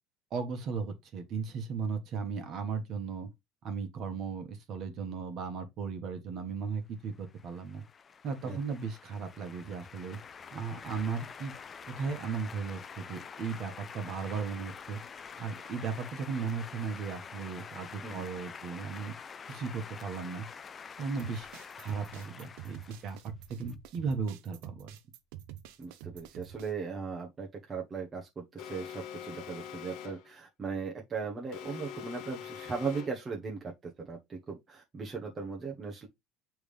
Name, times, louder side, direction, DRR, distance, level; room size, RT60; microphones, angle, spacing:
voice 1, 0.3-3.3 3.6-7.8 8.2-10.2 10.5-11.5 11.9-15.0 15.4-19.1 19.5-20.5 21.0-21.5 21.8-23.2 23.5-25.0, right 5 dB, 45° right, 1.5 m, -36 dB
sound 1, 7.1-23.7, left 6 dB, 25° left, 0.4 m, -47 dB
sound 2, 21.2-26.7, right 11 dB, 85° right, 0.8 m, -48 dB
voice 2, 25.8-36.1, right 5 dB, 20° right, 1.1 m, -38 dB
Alarm, 28.6-30.3 31.5-33.3, left 9 dB, 60° left, 0.9 m, -44 dB
8.2 x 3.5 x 3.5 m
cardioid pair, 160°, 0 cm